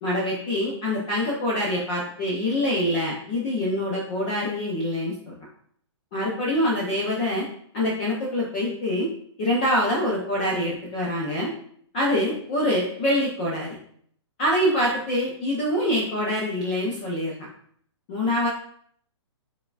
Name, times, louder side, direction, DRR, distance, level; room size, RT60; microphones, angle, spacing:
voice 1, 0.0-5.3 6.1-7.5 7.7-9.1 9.4-11.5 11.9-13.8 14.4-17.5 18.1-18.5, left 1 dB, 15° left, -4 dB, 0.4 m, -25 dB
4.6 x 3.3 x 2.3 m, 0.63 s
hypercardioid pair, 175°, 15 cm